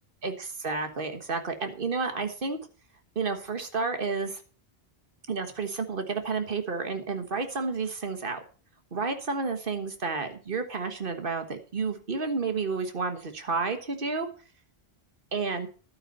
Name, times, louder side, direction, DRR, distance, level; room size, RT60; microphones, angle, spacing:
voice 1, 0.2-2.6 3.1-4.4 5.3-8.4 8.9-14.3 15.3-15.7, right 4 dB, 60° right, 7 dB, 1.7 m, -31 dB
11.5 x 8.9 x 5.5 m, 0.38 s
omnidirectional pair, 1.0 m